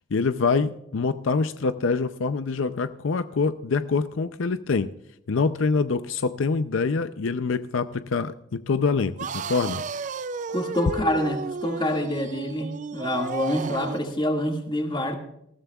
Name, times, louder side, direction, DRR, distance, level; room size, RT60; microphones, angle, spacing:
voice 1, 0.1-4.9 5.3-9.8, left 4 dB, 70° left, 11 dB, 0.5 m, -25 dB
sound 1, 9.2-14.1, right 4 dB, 35° right, 0.4 m, -33 dB
voice 2, 10.5-15.1, left 1 dB, 25° left, 3 dB, 1.9 m, -26 dB
20.0 x 15.0 x 2.3 m, 0.81 s
head